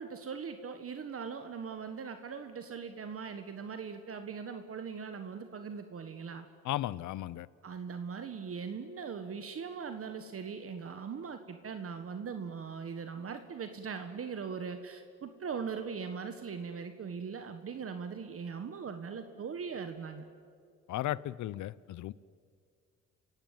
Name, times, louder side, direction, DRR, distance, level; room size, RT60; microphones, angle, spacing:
voice 1, 0.0-6.5 7.6-20.3, right 6 dB, 50° right, 1.6 m, -40 dB
voice 2, 6.6-7.5 20.9-22.1, left 14 dB, 75° left, 0.7 m, -35 dB
28.5 x 16.5 x 9.1 m
cardioid pair, 90°, 30 cm